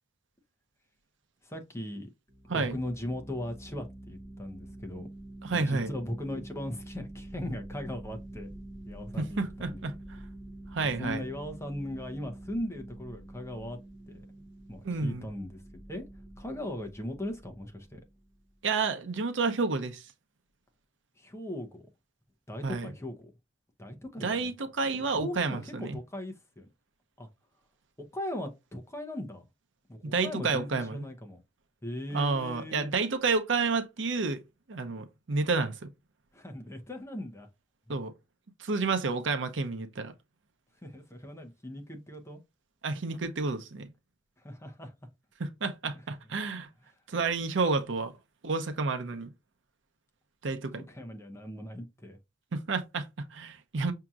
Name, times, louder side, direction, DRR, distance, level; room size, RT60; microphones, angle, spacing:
voice 1, 1.4-2.1 2.5-5.1 5.5-8.5 8.9-9.8 10.8-13.8 14.1-14.3 14.7-15.6 15.9-16.0 16.4-18.0 21.2-21.9 22.5-23.3 23.8-24.5 24.8-26.7 27.2-27.3 28.0-29.4 29.9-31.4 31.8-32.9 36.3-37.5 37.9-38.0 40.8-42.4 44.4-44.9 50.9-52.2, left 1 dB, 15° left, 0.7 m, -39 dB
sound 1, 2.3-18.5, right 1 dB, 25° right, 1.0 m, -47 dB
voice 2, 5.4-5.9 9.2-10.0 10.7-11.2 14.8-15.2 18.6-20.1 22.6-22.9 24.2-26.0 30.0-31.1 32.1-34.4 34.7-35.9 37.9-38.1 38.6-40.1 42.8-43.9 45.4-46.7 47.1-48.1 48.4-49.3 50.4-50.8 52.5-53.9, right 4 dB, 80° right, 0.7 m, -30 dB
5.8 x 2.8 x 2.4 m
head